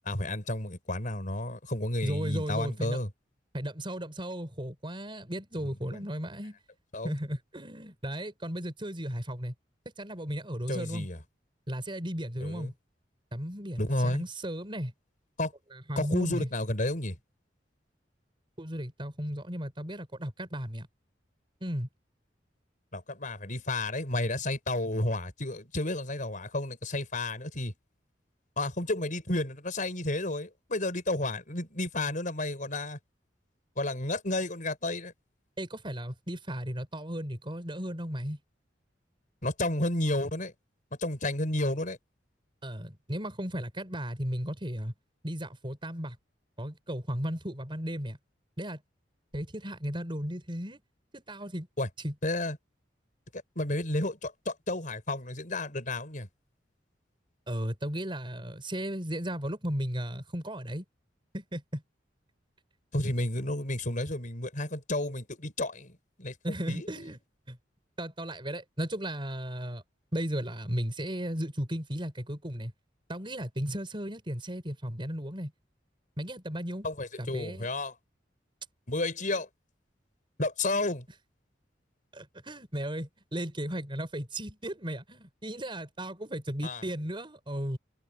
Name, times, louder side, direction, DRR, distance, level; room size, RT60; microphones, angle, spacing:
voice 1, 0.1-3.1 5.6-6.0 6.9-7.1 10.7-11.2 12.4-12.7 13.8-14.2 15.4-15.5 16.0-17.2 22.9-27.7 28.6-33.0 33.8-35.1 39.4-40.5 41.0-42.0 51.8-51.9 52.2-52.6 53.3-56.3 62.9-66.4 66.7-67.1 76.8-77.9 78.9-79.5 80.4-81.1 86.6-86.8, left 2 dB, 45° left, 5.7 m, -31 dB
voice 2, 2.0-3.0 3.5-6.6 7.0-9.5 10.0-11.1 11.7-12.7 13.3-14.9 15.7-16.5 18.6-20.9 21.6-21.9 35.6-38.4 42.6-44.9 45.2-46.2 46.6-48.2 48.6-48.8 49.3-50.8 51.1-51.7 52.0-52.1 57.5-60.8 61.3-61.8 66.4-67.2 67.5-67.6 68.0-69.8 70.1-72.7 73.1-75.5 76.2-76.9 77.2-77.7 82.1-87.8, equal, 30° right, 5.3 m, -35 dB
head